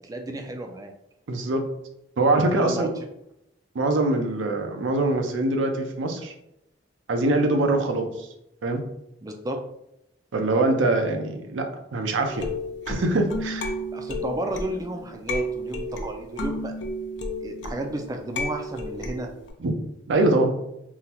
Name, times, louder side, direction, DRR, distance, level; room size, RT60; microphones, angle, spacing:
voice 1, 0.0-0.9 2.5-2.9 9.2-9.6 13.9-16.7 17.4-19.3, right 1 dB, 20° right, 4 dB, 0.3 m, -32 dB
voice 2, 1.3-1.6 2.2-2.9 3.7-6.3 7.1-8.3 8.6-8.8 10.3-12.5 12.9-13.7 19.6-19.7 20.1-20.5, right 2 dB, 90° right, 4 dB, 0.5 m, -23 dB
sound 1, 12.3-19.5, left 1 dB, 70° left, 0.5 m, -33 dB
3.7 x 2.1 x 2.8 m, 0.81 s
head